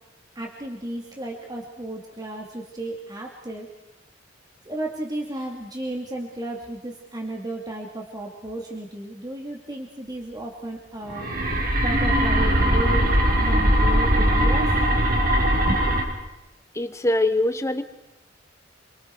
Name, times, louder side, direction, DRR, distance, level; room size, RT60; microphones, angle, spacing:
voice 1, 0.3-3.7 4.6-11.3 11.8-13.1 13.4-14.8 15.6-15.9, right 1 dB, 20° right, 0 dB, 2.8 m, -33 dB
sound 1, 11.1-16.0, equal, 50° right, 4.7 m, -20 dB
voice 2, 16.7-17.8, left 1 dB, 15° left, 9 dB, 1.3 m, -23 dB
28.0 x 25.0 x 4.9 m, 0.99 s
head